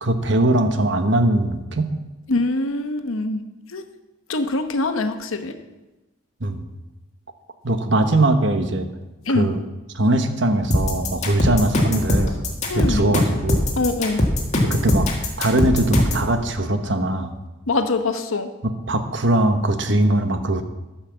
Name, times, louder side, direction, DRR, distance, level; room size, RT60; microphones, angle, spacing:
voice 1, 0.0-2.0 6.4-6.6 7.6-8.9 9.3-9.6 9.9-12.4 12.7-13.7 14.6-15.1 15.4-17.3 18.6-20.6, right 1 dB, 55° right, 8 dB, 1.0 m, -21 dB
voice 2, 2.3-3.4 3.7-3.8 4.3-5.5 9.3-9.5 12.6-13.1 13.8-14.2 17.7-18.5, left 2 dB, 80° left, 7 dB, 1.0 m, -23 dB
sound 1, 10.7-16.3, left 1 dB, 35° left, 1.7 m, -20 dB
13.5 x 5.8 x 7.2 m, 1.1 s
head